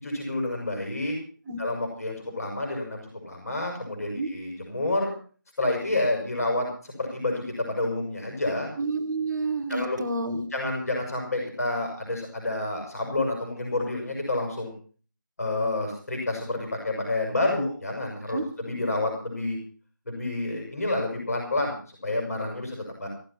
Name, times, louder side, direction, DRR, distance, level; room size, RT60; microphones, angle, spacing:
voice 1, 0.0-1.2 1.6-5.1 5.6-8.7 9.7-10.0 10.5-14.7 15.4-19.6 20.1-21.8 22.0-23.1, left 2 dB, 50° left, 1 dB, 7.0 m, -29 dB
voice 2, 8.8-10.5 18.3-18.4, right 3 dB, 5° right, -12 dB, 0.7 m, -29 dB
16.5 x 14.0 x 5.9 m, 0.41 s
figure-of-eight pair, 175°, 11 cm